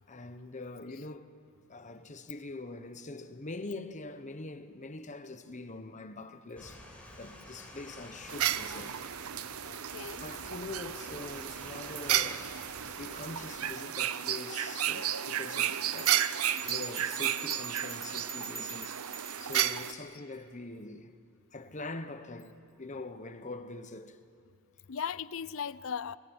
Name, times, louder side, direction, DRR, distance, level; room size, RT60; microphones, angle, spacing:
voice 1, 0.1-1.3 1.7-6.9 7.2-8.9 10.2-12.5 13.0-16.3 16.6-19.1 19.4-21.1 21.5-24.2, left 2 dB, 35° left, 1.0 m, -43 dB
sound 1, 6.6-13.5, left 1 dB, 5° left, 4.6 m, -50 dB
sound 2, 8.3-19.9, right 10 dB, 80° right, 0.7 m, -33 dB
voice 2, 9.7-10.3 24.9-26.2, left 7 dB, 65° left, 0.5 m, -38 dB
sound 3, 16.0-19.7, right 5 dB, 15° right, 2.2 m, -42 dB
27.5 x 19.5 x 8.8 m
head